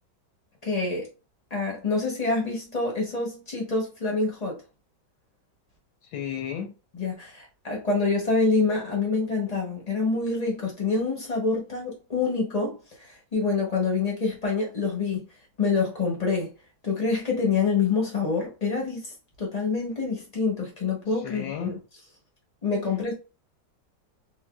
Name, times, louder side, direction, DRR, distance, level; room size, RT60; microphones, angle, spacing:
voice 1, 0.6-1.1 1.5-4.6 6.9-15.3 15.6-16.5 16.8-19.1 19.4-21.8 22.6-23.1, left 4 dB, 50° left, 0.4 m, -26 dB
voice 2, 6.1-6.7 21.2-21.8, left 8 dB, 80° left, 1.3 m, -33 dB
4.1 x 2.1 x 2.2 m
omnidirectional pair, 2.0 m